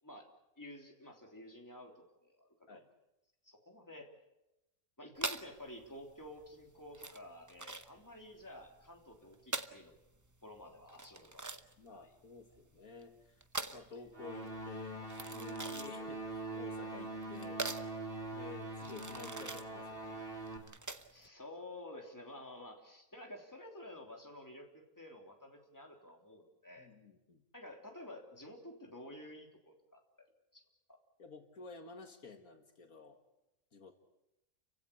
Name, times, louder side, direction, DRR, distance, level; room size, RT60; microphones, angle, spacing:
voice 1, 0.6-2.8 3.4-4.1 5.0-9.9 10.4-11.5 11.9-12.1 21.1-26.9 27.5-30.3 30.5-30.6 30.9-31.0, left 1 dB, 10° left, 1 dB, 3.3 m, -51 dB
sound 1, 5.2-21.3, right 2 dB, 15° right, 0.7 m, -44 dB
voice 2, 11.8-13.4 13.7-16.2 16.5-17.7 18.3-20.2 26.8-27.4 31.2-33.2 33.7-33.9, left 4 dB, 70° left, 5 dB, 2.2 m, -52 dB
sound 2, 14.1-20.6, right 2 dB, 35° right, 3.0 m, -43 dB
30.0 x 16.0 x 8.6 m, 0.93 s
omnidirectional pair, 1.6 m